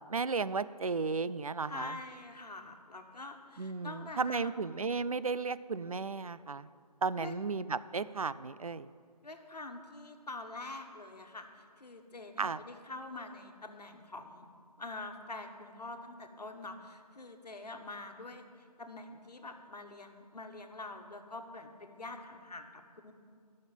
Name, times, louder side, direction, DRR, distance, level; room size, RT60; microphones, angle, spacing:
voice 1, 0.1-2.0 3.6-6.7 7.0-8.9 12.4-12.6, right 4 dB, 60° right, 16 dB, 0.4 m, -34 dB
voice 2, 1.7-4.5 7.2-7.3 9.2-14.5 14.8-18.4 18.8-23.1, left 2 dB, 70° left, 4 dB, 1.5 m, -45 dB
12.0 x 6.5 x 9.0 m, 2.1 s
figure-of-eight pair, 175°, 21 cm